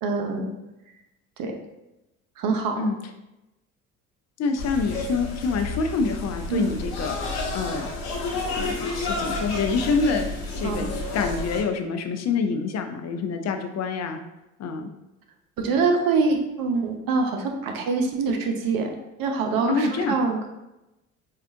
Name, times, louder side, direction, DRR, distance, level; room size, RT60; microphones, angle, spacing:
voice 1, 0.0-0.4 1.4-1.5 2.4-2.8 6.5-6.7 10.6-10.9 15.6-20.5, right 4 dB, 60° right, 4 dB, 0.7 m, -25 dB
voice 2, 4.4-7.9 8.5-10.3 10.6-14.2 14.6-14.9 19.6-20.2, left 4 dB, 40° left, 6 dB, 0.6 m, -26 dB
sound 1, 4.6-11.6, left 2 dB, 70° left, 1.1 m, -30 dB
4.4 x 2.4 x 2.6 m, 0.95 s
hypercardioid pair, 55°, 39 cm